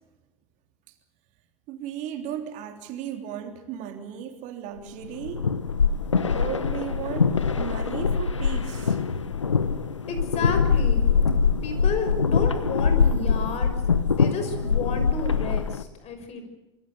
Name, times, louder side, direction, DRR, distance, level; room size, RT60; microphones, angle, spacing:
voice 1, 1.7-5.5 6.3-9.0, right 9 dB, 55° right, 3.3 m, -35 dB
sound 1, 5.0-15.8, left 5 dB, 90° left, 1.1 m, -23 dB
voice 2, 10.1-11.0 11.6-13.7 14.1-16.4, left 3 dB, 45° left, 6.2 m, -32 dB
26.0 x 24.5 x 6.9 m
figure-of-eight pair, 70°, 15 cm